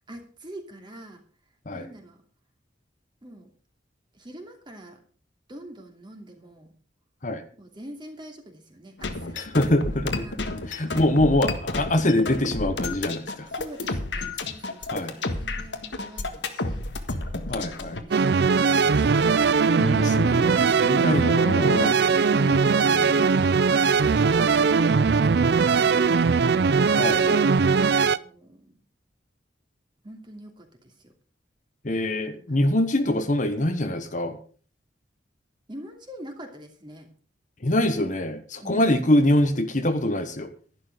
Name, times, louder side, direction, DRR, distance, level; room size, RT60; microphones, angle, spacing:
voice 1, 0.1-1.2 1.7-2.2 3.2-3.5 4.1-5.0 5.5-6.7 7.6-9.5 10.1-11.0 13.5-16.9 17.5-19.4 27.8-28.8 30.0-31.1 32.5-32.9 35.7-37.1 38.6-39.4, right 1 dB, 25° right, 3 dB, 2.7 m, -45 dB
sound 1, 9.0-18.0, left 2 dB, 80° left, 1.7 m, -31 dB
voice 2, 9.5-10.2 10.7-13.5 14.9-15.1 17.5-18.0 19.8-22.0 22.3-23.3 27.0-27.5 31.8-34.4 37.6-40.5, left 1 dB, 45° left, 8 dB, 1.2 m, -24 dB
sound 2, 18.1-28.2, right 5 dB, 60° right, 0.5 m, -20 dB
11.5 x 11.5 x 5.2 m, 0.41 s
head